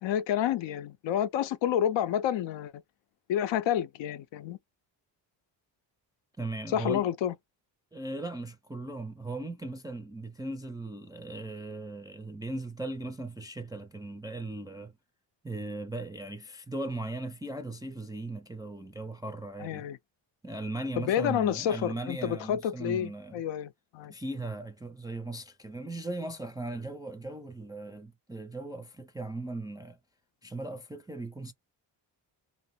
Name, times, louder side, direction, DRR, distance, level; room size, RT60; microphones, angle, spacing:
voice 1, 0.0-2.8 3.3-4.6 6.7-7.3 19.6-20.0 21.0-24.1, left 10 dB, 80° left, 0.6 m, -29 dB
voice 2, 6.4-7.0 7.9-14.9 15.4-19.9 20.4-23.4 24.1-30.0 30.4-31.5, right 2 dB, 10° right, 0.3 m, -38 dB
2.6 x 2.0 x 3.0 m
cardioid pair, 85°, 44 cm